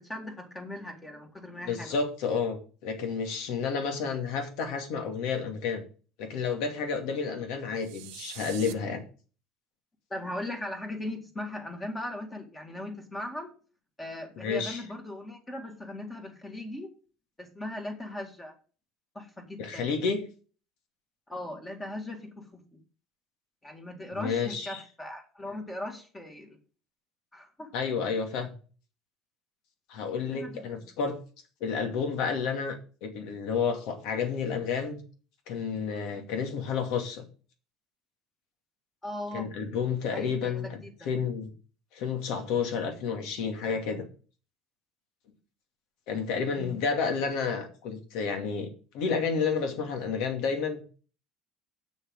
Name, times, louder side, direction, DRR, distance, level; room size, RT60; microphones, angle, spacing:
voice 1, 0.0-2.0 10.1-13.5 14.0-16.9 17.4-18.5 19.2-19.9 21.3-22.8 23.6-26.6 27.3-27.7 30.3-30.9 39.0-39.5 40.1-40.9 46.6-46.8, left 1 dB, 10° left, 4 dB, 2.1 m, -39 dB
voice 2, 1.7-5.8 6.2-9.0 14.4-14.8 19.6-20.2 24.1-24.8 27.7-28.5 29.9-31.2 31.6-35.0 35.5-37.3 39.3-41.5 41.9-44.1 46.1-50.8, left 5 dB, 70° left, 6 dB, 2.4 m, -30 dB
sound 1, 7.8-8.7, right 16 dB, 85° right, 0.8 m, -44 dB
7.3 x 6.5 x 7.8 m, 0.38 s
cardioid pair, 160°, 0 cm